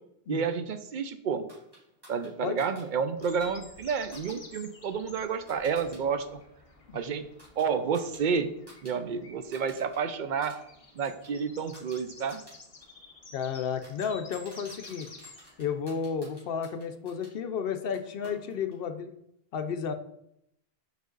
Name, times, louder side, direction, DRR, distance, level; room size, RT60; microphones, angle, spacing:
voice 1, 0.3-1.5 2.1-6.4 6.9-7.3 7.6-8.5 8.8-10.6 11.0-12.4, right 6 dB, 55° right, 9 dB, 0.6 m, -30 dB
sound 1, 1.5-6.0 6.3-9.0 9.2-10.0 10.3-17.3 17.9-18.8, equal, 20° right, 2.4 m, -55 dB
sound 2, 3.2-15.7, left 3 dB, 35° left, 0.8 m, -52 dB
voice 2, 13.3-15.1 15.6-19.1 19.5-19.9, left 6 dB, 70° left, 9 dB, 0.8 m, -32 dB
5.1 x 4.9 x 3.9 m, 0.77 s
omnidirectional pair, 1.1 m